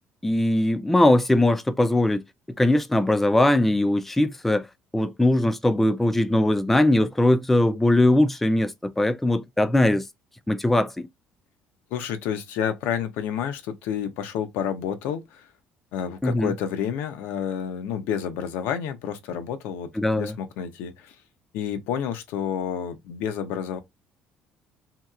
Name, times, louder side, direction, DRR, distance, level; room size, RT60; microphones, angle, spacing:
voice 1, 0.2-2.2 2.6-4.6 4.9-10.0 10.5-11.1 16.2-16.5 20.0-20.3, left 1 dB, 5° left, 0.3 m, -20 dB
voice 2, 11.9-15.5 15.9-21.2 21.5-23.8, left 8 dB, 85° left, 0.7 m, -30 dB
2.8 x 2.8 x 2.3 m
cardioid pair, 135°, 3 cm